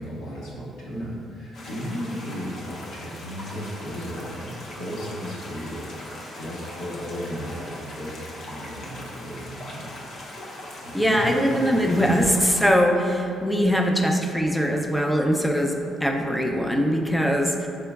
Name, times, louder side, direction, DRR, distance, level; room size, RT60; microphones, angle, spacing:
voice 1, 0.0-10.0 10.8-12.0, equal, 85° left, -8 dB, 1.3 m, -35 dB
sound 1, 1.5-12.7, left 1 dB, 65° left, 0.6 m, -40 dB
voice 2, 10.9-17.7, equal, ahead, 1 dB, 0.4 m, -22 dB
4.3 x 3.8 x 2.3 m, 2.4 s
cardioid pair, 90°, 0 cm